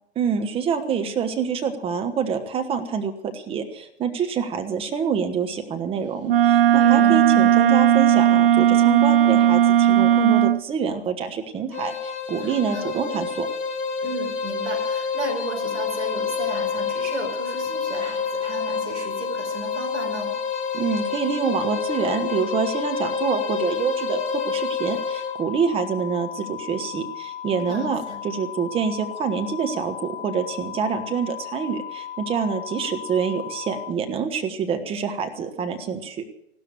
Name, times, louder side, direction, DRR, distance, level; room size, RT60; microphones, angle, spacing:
voice 1, 0.2-13.5 20.7-36.2, right 6 dB, 15° right, 6 dB, 1.4 m, -26 dB
Wind instrument woodwind instrument, 6.2-10.6, right 11 dB, 50° right, 0.7 m, -16 dB
voice 2, 6.7-7.2 12.4-12.9 14.0-20.4 27.6-28.2, right 3 dB, 80° right, 3 dB, 5.0 m, -34 dB
sound 1, 11.7-25.4, left 5 dB, 20° left, 1.9 m, -28 dB
sound 2, 15.3-33.9, left 10 dB, 55° left, 1.6 m, -36 dB
15.5 x 13.0 x 6.5 m, 0.79 s
figure-of-eight pair, 115°, 35 cm